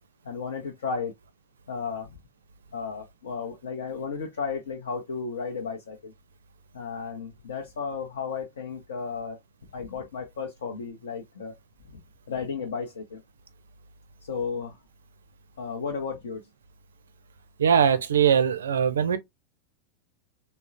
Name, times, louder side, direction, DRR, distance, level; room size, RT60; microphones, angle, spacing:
voice 1, 0.2-1.1 1.7-2.2 2.7-6.1 6.7-9.4 9.7-11.5 11.9-12.0 12.3-13.2 14.3-14.7 15.6-16.4, left 5 dB, 65° left, 0.6 m, -34 dB
voice 2, 17.6-19.2, right 7 dB, 65° right, 0.4 m, -21 dB
3.6 x 2.0 x 2.7 m
figure-of-eight pair, 90°, 0 cm